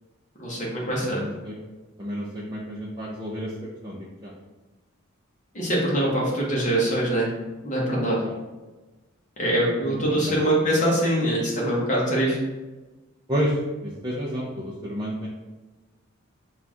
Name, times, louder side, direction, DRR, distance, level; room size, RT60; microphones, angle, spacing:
voice 1, 0.4-1.2 5.5-7.3 7.6-8.2 9.4-12.4, right 1 dB, 35° left, -4 dB, 1.1 m, -23 dB
voice 2, 1.0-1.5 2.0-3.5 3.8-4.3 8.3-8.4 9.8-10.3 10.6-10.7 13.3-15.3, equal, 20° right, -6 dB, 0.5 m, -30 dB
4.4 x 2.4 x 4.2 m, 1.2 s
head